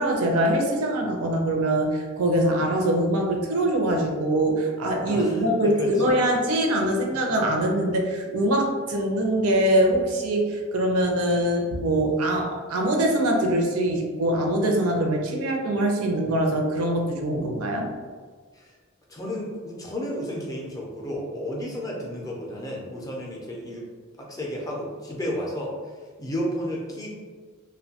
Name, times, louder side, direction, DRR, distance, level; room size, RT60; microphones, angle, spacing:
voice 1, 0.0-17.9, right 1 dB, 80° right, 1 dB, 0.5 m, -23 dB
voice 2, 5.1-6.2 7.1-7.2 18.5-18.7 19.1-23.9 24.2-25.8 26.2-27.1, equal, 15° left, -2 dB, 0.4 m, -32 dB
2.6 x 2.1 x 2.7 m, 1.5 s
head